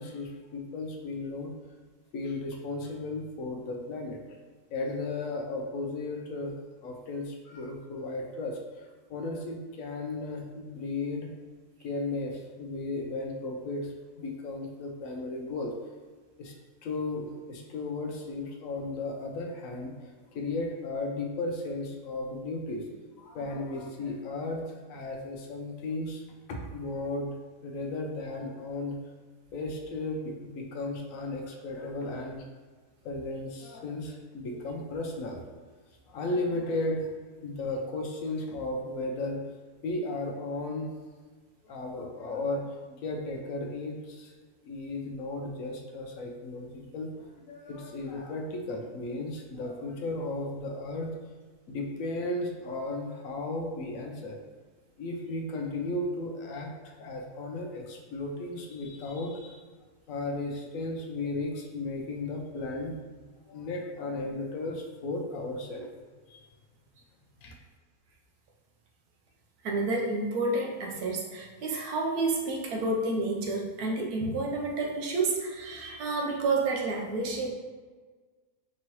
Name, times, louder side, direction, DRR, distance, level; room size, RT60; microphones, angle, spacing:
voice 1, 0.0-1.5 2.1-4.4 4.7-11.3 11.8-15.7 16.4-16.5 16.8-22.9 23.2-26.2 26.5-27.3 27.6-29.0 29.5-32.4 33.0-35.4 36.1-37.1 37.4-39.4 39.8-40.9 41.6-44.4 44.6-51.1 51.7-54.4 55.0-59.6 60.1-65.9 66.3-66.4 67.4-67.5, left 2 dB, 70° left, 2 dB, 0.9 m, -35 dB
voice 2, 69.6-77.5, right 2 dB, 85° right, 0 dB, 1.2 m, -30 dB
4.4 x 3.1 x 2.9 m, 1.4 s
omnidirectional pair, 1.6 m